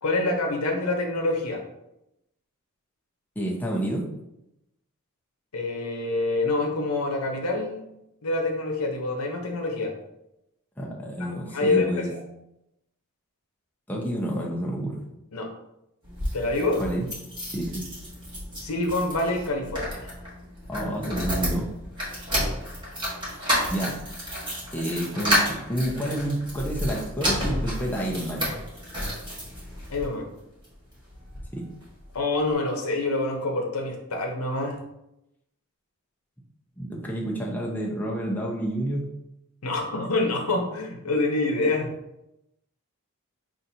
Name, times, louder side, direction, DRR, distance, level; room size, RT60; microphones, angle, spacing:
voice 1, 0.0-1.6 5.5-7.8 8.2-9.9 11.2-12.2 15.3-15.5 16.3-16.8 18.5-20.1 29.9-30.3 32.1-34.8 39.6-41.9, left 2 dB, 85° left, 2 dB, 0.8 m, -26 dB
voice 2, 3.4-4.1 10.8-12.1 13.9-15.0 16.8-17.1 17.5-17.8 20.7-21.7 23.7-24.0 24.7-28.5 31.5-31.6 36.8-39.1, right 1 dB, 10° left, -3 dB, 0.6 m, -29 dB
sound 1, 16.0-30.0 30.6-31.5 31.8-31.9 32.1-32.2, equal, 20° right, 1.5 m, -31 dB
5.7 x 2.5 x 2.7 m, 0.86 s
head